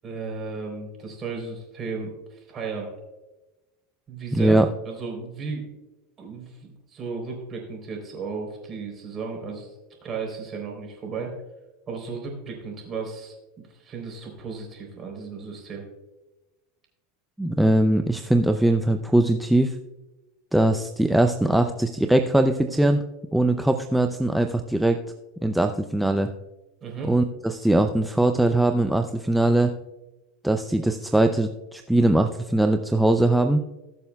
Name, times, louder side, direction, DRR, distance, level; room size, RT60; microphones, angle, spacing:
voice 1, 0.0-2.9 4.1-4.6 4.9-5.7 6.2-9.7 10.0-11.3 11.9-13.4 13.7-15.8 26.8-27.1, right 4 dB, 30° right, 1 dB, 3.7 m, -34 dB
voice 2, 4.3-4.7 17.4-19.8 20.5-23.0 23.3-25.0 25.4-26.3 27.1-29.7 30.4-33.6, right 1 dB, 5° right, 5 dB, 0.5 m, -21 dB
20.0 x 6.8 x 2.3 m, 1.1 s
supercardioid pair, 125°, 0 cm